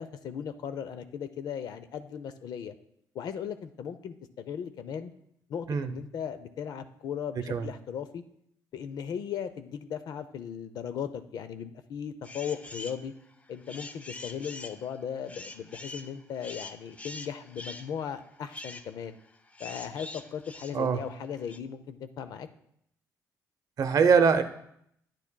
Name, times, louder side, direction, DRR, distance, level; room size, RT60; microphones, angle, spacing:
voice 1, 0.0-2.7 3.1-5.1 5.5-8.2 8.7-13.1 13.5-19.2 19.6-22.5, left 8 dB, 65° left, 10 dB, 0.6 m, -37 dB
sound 1, 12.2-13.0 13.4-21.6, left 2 dB, 20° left, 0.5 m, -44 dB
voice 2, 23.8-24.4, right 6 dB, 55° right, 9 dB, 0.7 m, -22 dB
10.5 x 9.7 x 2.3 m, 0.72 s
cardioid pair, 90°, 7 cm